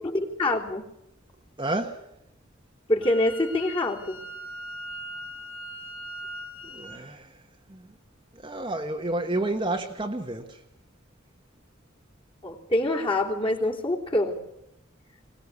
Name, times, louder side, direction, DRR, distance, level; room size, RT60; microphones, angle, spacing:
voice 1, 0.0-0.8 2.9-4.2 12.4-14.4, left 1 dB, 25° left, 3.5 m, -25 dB
voice 2, 1.6-2.1 6.6-7.3 7.7-7.9 8.4-10.6, right 2 dB, 25° right, 1.4 m, -30 dB
Wind instrument woodwind instrument, 3.0-7.0, equal, 85° left, 3.7 m, -40 dB
23.0 x 19.5 x 8.5 m
head